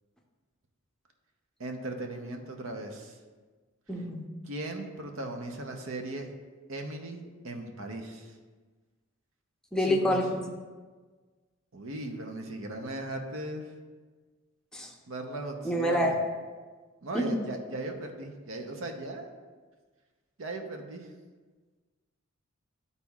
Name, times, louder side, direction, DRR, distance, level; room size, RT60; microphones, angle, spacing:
voice 1, 1.6-3.2 4.4-6.3 6.7-8.3 9.8-10.2 11.7-13.7 15.1-16.1 17.0-19.3 20.4-21.1, right 1 dB, 70° right, 4 dB, 0.8 m, -38 dB
voice 2, 3.9-4.2 9.7-10.3 14.7-14.9 15.6-16.1 17.1-17.3, equal, 5° left, 0 dB, 0.6 m, -27 dB
11.5 x 4.1 x 2.4 m, 1.4 s
head